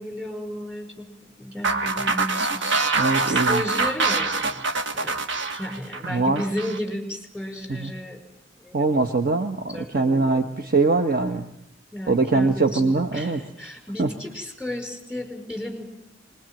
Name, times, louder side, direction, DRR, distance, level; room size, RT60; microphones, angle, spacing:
voice 1, 0.0-4.6 4.9-5.2 5.5-8.2 8.6-8.9 9.7-10.5 11.9-15.9, left 1 dB, 5° right, 4 dB, 5.2 m, -33 dB
sound 1, 1.6-6.8, right 3 dB, 65° right, 1.6 m, -24 dB
voice 2, 3.0-3.6 6.1-6.4 7.7-7.9 8.7-11.5 12.1-13.4 14.0-14.1, right 3 dB, 50° right, 6 dB, 1.2 m, -22 dB
25.5 x 21.5 x 9.0 m, 0.76 s
head